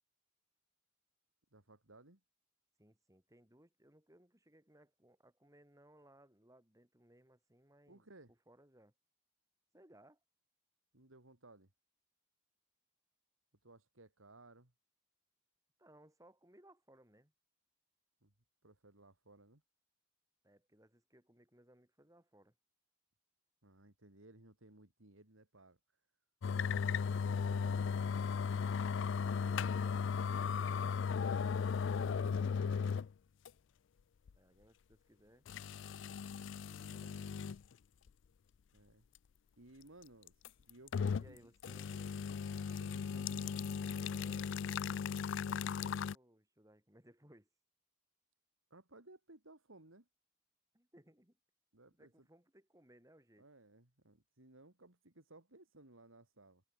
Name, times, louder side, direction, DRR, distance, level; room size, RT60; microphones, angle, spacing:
voice 1, 1.5-2.2 7.9-8.3 10.9-11.7 13.6-14.7 18.2-18.3 18.6-19.6 23.6-25.8 27.1-27.9 31.9-33.0 36.7-37.3 38.7-39.1 39.6-41.5 42.8-43.4 48.7-50.1 51.7-52.3 53.4-56.6, right 2 dB, 85° right, 3.3 m, -60 dB
voice 2, 2.8-8.0 8.5-8.9 9.7-10.2 15.8-17.3 20.4-22.5 29.2-30.1 34.3-35.4 36.9-37.4 41.1-42.4 43.1-47.5 50.7-51.4 51.9-53.5, right 1 dB, 15° right, 4.8 m, -64 dB
sound 1, 26.4-33.1 33.5-33.6 34.3-34.4 35.5-37.6 38.1-38.2 40.3-41.3 41.6-46.1, left 6 dB, 65° left, 0.4 m, -36 dB
head